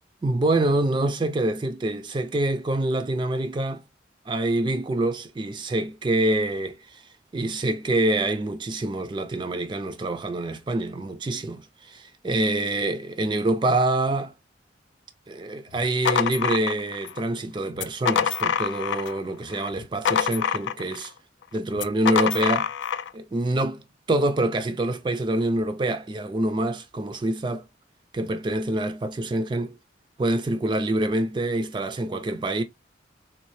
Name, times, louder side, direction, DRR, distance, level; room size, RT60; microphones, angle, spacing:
voice 1, 0.2-3.8 4.3-7.0 7.3-14.3 15.3-21.1 21.5-22.7 23.1-27.6 28.1-29.8 30.2-32.6, right 1 dB, 25° right, 0.3 m, -26 dB
sound 1, 15.7-17.2 17.7-19.2 19.5-21.1 21.7-23.1, left 8 dB, 75° left, 0.3 m, -25 dB
3.6 x 2.7 x 3.0 m
head